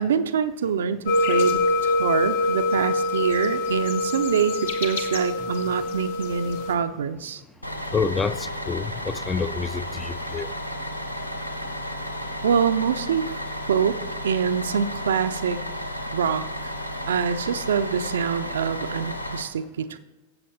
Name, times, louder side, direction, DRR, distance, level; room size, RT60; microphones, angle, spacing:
voice 1, 0.0-7.4 12.4-13.4 13.7-15.6 16.1-16.7 17.1-20.0, right 7 dB, 65° right, 11 dB, 0.4 m, -25 dB
sound 1, 1.1-6.7, left 2 dB, 65° left, 1.1 m, -25 dB
Bus, 7.6-19.4, equal, 85° left, 0.6 m, -33 dB
voice 2, 7.9-10.5, left 5 dB, 15° left, 15 dB, 0.3 m, -28 dB
13.5 x 7.6 x 2.7 m, 1.1 s
figure-of-eight pair, 90°, 0 cm